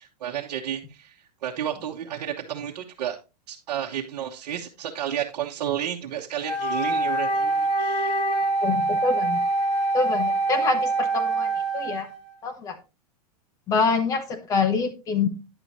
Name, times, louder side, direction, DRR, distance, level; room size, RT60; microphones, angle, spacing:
voice 1, 0.0-3.2 3.5-8.2, right 10 dB, 70° right, 1.2 m, -32 dB
Wind instrument woodwind instrument, 6.4-12.3, right 2 dB, 80° left, 2.1 m, -25 dB
voice 2, 8.6-9.4 9.9-12.1 12.4-12.8 13.7-15.3, left 5 dB, 15° left, 1.2 m, -26 dB
10.0 x 6.9 x 3.0 m
supercardioid pair, 170°, 21 cm